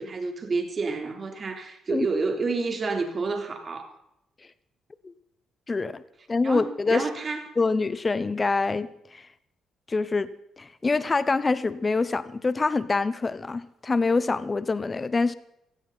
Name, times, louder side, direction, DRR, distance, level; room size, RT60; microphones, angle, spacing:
voice 1, 0.0-3.9 6.4-7.4, right 4 dB, 40° right, 3.6 m, -29 dB
voice 2, 5.7-6.0 6.3-7.0 7.6-9.2 9.9-10.3 10.6-15.3, left 3 dB, 25° left, 0.9 m, -25 dB
17.0 x 15.5 x 4.2 m
cardioid pair, 90°, 0 cm